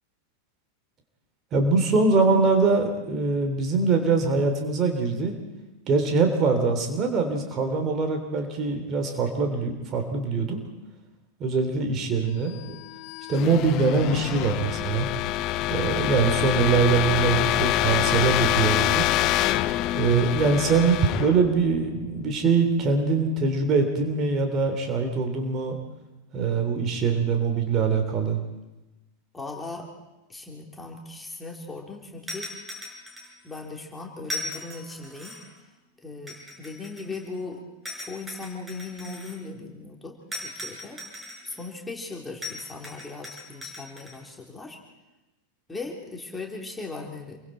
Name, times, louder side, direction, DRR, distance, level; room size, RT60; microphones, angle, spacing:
voice 1, 1.5-5.4 5.9-10.6 11.4-12.8 13.3-15.1 15.7-19.0 19.9-25.8 26.3-28.4, right 4 dB, 30° right, 5 dB, 3.2 m, -23 dB
sound 1, 12.7-22.4, left 14 dB, 40° left, 0.7 m, -26 dB
voice 2, 29.3-29.9 30.3-32.5 33.4-35.3 36.0-37.6 38.0-40.2 40.4-41.0 41.4-44.8 45.7-47.4, left 3 dB, 10° left, 0 dB, 3.6 m, -38 dB
sound 2, 32.3-33.6 34.2-35.6 36.3-37.4 37.9-39.4 40.3-41.7 42.4-44.2, left 2 dB, 10° right, 6.6 m, -38 dB
28.0 x 23.0 x 4.4 m, 1.0 s
figure-of-eight pair, 90°, 0 cm